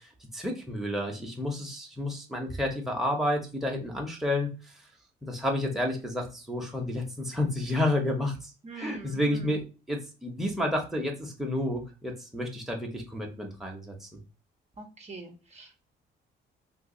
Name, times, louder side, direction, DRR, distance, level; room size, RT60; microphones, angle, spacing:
voice 1, 0.3-4.5 5.2-8.4 8.8-9.6 9.9-14.1, left 1 dB, ahead, 0 dB, 1.0 m, -30 dB
voice 2, 8.6-9.6 14.8-15.8, right 2 dB, 35° right, 2 dB, 0.8 m, -44 dB
2.6 x 2.5 x 3.8 m, 0.32 s
cardioid pair, 90°, 20 cm